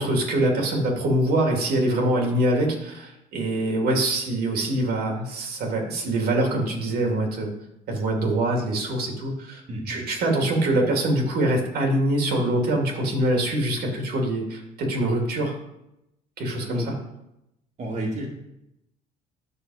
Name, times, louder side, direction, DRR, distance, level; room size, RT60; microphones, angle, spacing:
voice 1, 0.0-7.5 7.9-9.6 9.9-15.6 16.4-16.8, right 1 dB, 65° right, 1 dB, 2.4 m, -24 dB
voice 2, 17.8-18.3, right 1 dB, 45° right, -2 dB, 2.0 m, -30 dB
10.5 x 6.4 x 4.8 m, 0.86 s
cardioid pair, 110°, 17 cm